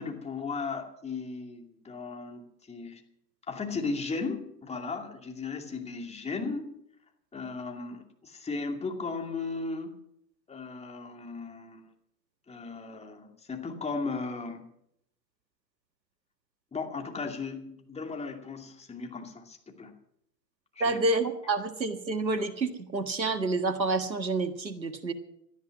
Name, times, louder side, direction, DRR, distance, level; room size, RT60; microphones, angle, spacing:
voice 1, 0.0-2.4 2.7-3.0 3.5-6.7 7.3-9.9 10.5-11.9 12.5-14.7 16.7-19.9 20.7-21.0, left 4 dB, 10° left, 4 dB, 2.5 m, -36 dB
voice 2, 20.8-25.1, right 3 dB, 85° right, 10 dB, 1.8 m, -28 dB
17.5 x 12.5 x 6.0 m, 0.74 s
figure-of-eight pair, 95°, 50 cm